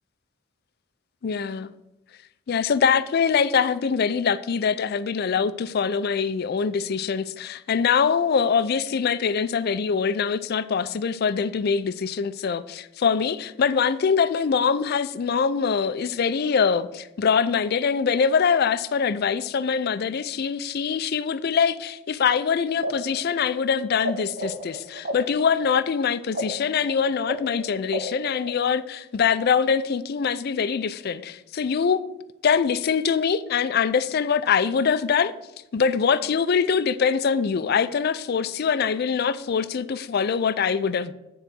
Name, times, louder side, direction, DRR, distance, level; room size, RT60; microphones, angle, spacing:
voice 1, 1.2-1.7 2.5-32.0 32.4-35.3 35.7-41.1, left 6 dB, 45° left, 0.3 m, -23 dB
sound 1, 22.7-24.1 24.4-28.8, equal, 45° right, 1.4 m, -32 dB
9.1 x 3.8 x 6.1 m
head